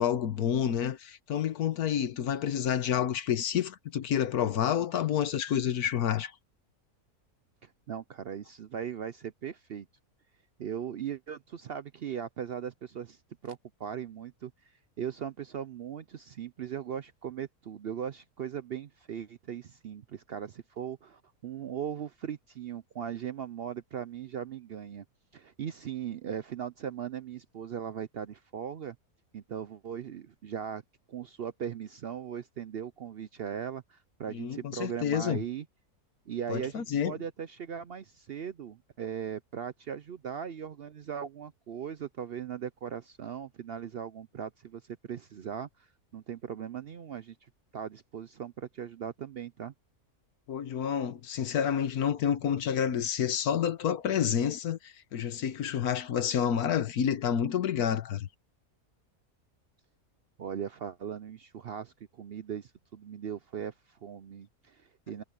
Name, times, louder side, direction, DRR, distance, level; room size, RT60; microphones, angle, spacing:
voice 1, 0.0-6.3 34.3-35.4 36.5-37.2 50.5-58.3, left 9 dB, 85° left, 1.5 m, -29 dB
voice 2, 7.6-9.9 10.6-13.2 13.4-14.5 15.0-25.0 25.3-29.0 29.3-30.8 31.1-35.7 36.3-45.9 46.1-47.3 47.7-49.7 60.4-65.2, right 8 dB, 60° right, 0.6 m, -39 dB
omnidirectional pair, 1.6 m